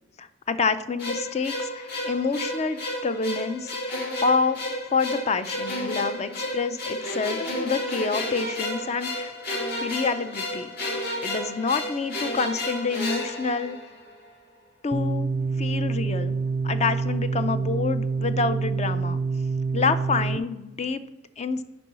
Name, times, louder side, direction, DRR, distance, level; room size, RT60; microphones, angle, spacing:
voice 1, 0.2-3.8 4.2-4.6 4.9-9.3 9.8-10.7 11.2-13.8 14.8-15.3 15.6-16.4 16.6-19.2 19.7-21.0 21.4-21.6, left 4 dB, 35° left, 11 dB, 0.5 m, -27 dB
sound 1, 1.0-14.3, left 1 dB, 60° left, 2.0 m, -32 dB
sound 2, 14.9-20.4, right 4 dB, 25° right, 0.4 m, -26 dB
7.0 x 5.4 x 5.7 m, 1.0 s
head